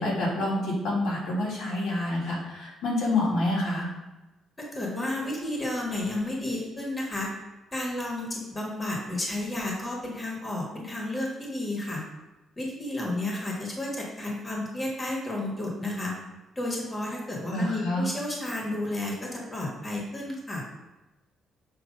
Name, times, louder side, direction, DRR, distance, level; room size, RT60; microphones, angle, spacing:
voice 1, 0.0-3.9 17.5-18.1, left 1 dB, 85° left, -4 dB, 2.1 m, -27 dB
voice 2, 4.7-7.3 7.7-12.0 12.6-16.1 16.5-20.6, left 1 dB, 20° left, -2 dB, 1.4 m, -32 dB
6.7 x 3.1 x 5.1 m, 1.0 s
cardioid pair, 130°, 0 cm